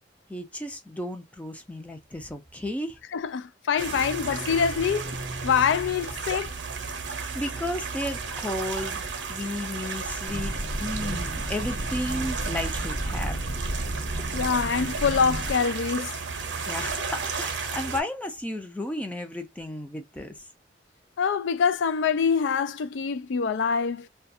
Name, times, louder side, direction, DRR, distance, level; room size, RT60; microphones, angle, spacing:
voice 1, 0.3-3.0 3.9-4.0 7.0-10.5 10.8-13.4 16.7-20.3, left 1 dB, 10° left, 0.5 m, -33 dB
voice 2, 3.1-5.1 5.4-6.5 14.3-16.1 21.2-24.1, left 6 dB, 75° left, 0.4 m, -25 dB
sound 1, 3.8-18.0, right 4 dB, 70° right, 0.7 m, -33 dB
sound 2, 10.3-15.5, equal, 50° left, 0.9 m, -33 dB
2.4 x 2.2 x 2.6 m
head